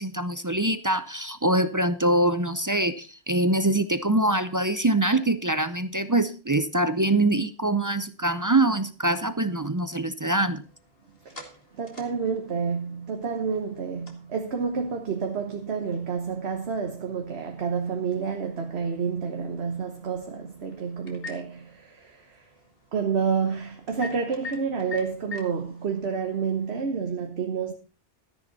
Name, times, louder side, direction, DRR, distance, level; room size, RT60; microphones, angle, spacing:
voice 1, 0.0-10.6, right 1 dB, 30° right, 0.4 m, -24 dB
sound 1, 10.5-26.9, left 3 dB, 50° left, 2.4 m, -47 dB
voice 2, 11.7-22.4 22.9-27.7, right 6 dB, 60° right, 1.4 m, -29 dB
13.5 x 10.5 x 4.1 m
omnidirectional pair, 1.2 m